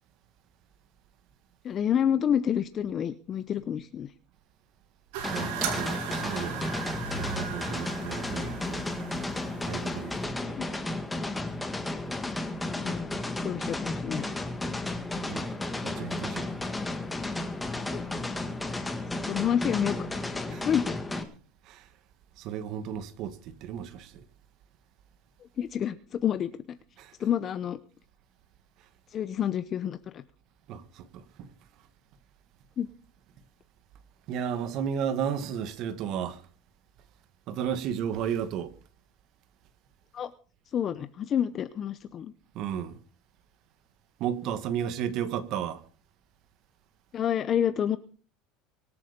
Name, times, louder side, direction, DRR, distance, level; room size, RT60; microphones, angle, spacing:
voice 1, 1.6-4.1 10.4-10.7 12.8-13.1 13.4-14.3 17.9-18.0 18.7-18.9 19.3-21.0 25.6-26.5 27.2-27.8 29.1-30.2 32.8-32.9 40.1-40.3 40.7-42.3 47.1-48.0, left 9 dB, 35° left, 0.7 m, -29 dB
sound 1, 5.1-10.2, right 7 dB, 80° right, 5.6 m, -37 dB
sound 2, 5.2-21.2, left 2 dB, 10° left, 1.9 m, -33 dB
voice 2, 5.3-6.8 7.2-8.8 9.6-10.6 15.3-15.5 15.8-16.5 20.5-20.7 21.6-21.9 22.4-24.2 27.0-27.1 30.7-31.5 34.3-36.4 37.5-38.7 42.5-43.0 44.2-45.8, right 8 dB, 50° right, 1.8 m, -33 dB
24.5 x 8.4 x 5.2 m
cardioid pair, 145°, 0 cm